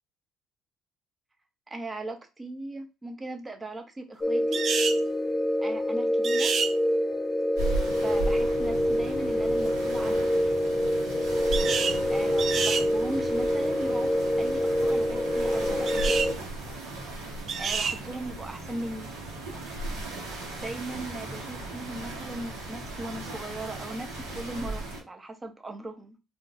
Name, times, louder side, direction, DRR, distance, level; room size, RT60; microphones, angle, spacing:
voice 1, 1.7-4.6 5.6-6.5 8.0-10.4 12.1-16.3 17.5-19.1 20.5-26.2, right 2 dB, 20° right, 5 dB, 0.7 m, -38 dB
sound 1, 4.2-16.3, left 1 dB, 20° left, 0.4 m, -26 dB
sound 2, 4.5-5.0 6.2-6.7 11.5-12.0 12.4-12.9 15.9-16.3 17.5-18.0, right 6 dB, 50° right, 0.3 m, -28 dB
sound 3, 7.6-25.0, right 2 dB, 90° right, 1.1 m, -36 dB
3.7 x 2.5 x 2.5 m, 0.28 s
supercardioid pair, 80°, 0 cm